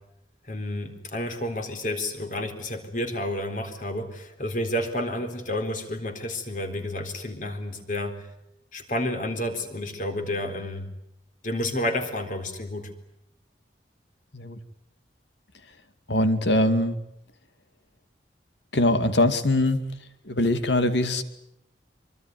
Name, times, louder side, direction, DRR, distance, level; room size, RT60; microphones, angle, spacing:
voice 1, 0.4-8.2 8.7-10.9 11.4-12.9, left 1 dB, 45° left, 6 dB, 3.9 m, -30 dB
voice 2, 16.1-17.0 18.7-19.8 20.3-21.2, left 1 dB, 75° left, 10 dB, 2.5 m, -22 dB
24.5 x 24.5 x 9.5 m, 0.79 s
head